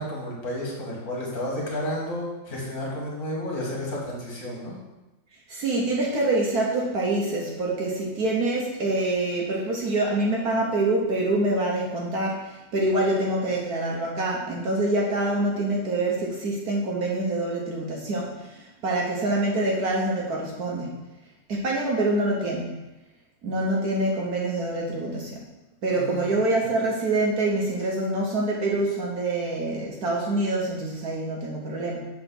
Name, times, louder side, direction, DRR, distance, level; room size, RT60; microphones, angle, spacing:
voice 1, 0.0-4.8 25.9-26.3, left 1 dB, 45° left, -3 dB, 2.4 m, -31 dB
voice 2, 5.5-21.0 21.5-22.8 23.4-25.4 25.8-32.1, right 2 dB, 60° right, -3 dB, 1.5 m, -26 dB
7.6 x 4.4 x 5.8 m, 1.1 s
omnidirectional pair, 2.0 m